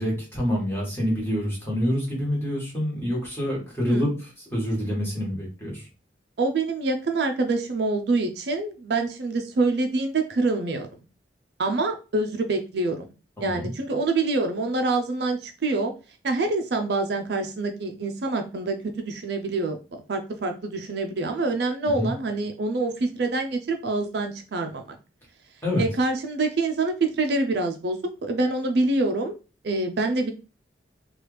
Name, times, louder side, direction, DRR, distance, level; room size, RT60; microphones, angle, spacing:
voice 1, 0.0-5.9 13.4-13.7 21.8-22.1 25.6-25.8, equal, 10° left, -4 dB, 1.3 m, -27 dB
voice 2, 6.4-10.9 11.6-13.1 13.4-15.9 16.2-25.0 25.8-29.4 29.6-30.3, right 3 dB, 60° right, 5 dB, 0.4 m, -26 dB
3.1 x 2.4 x 3.2 m, 0.32 s
head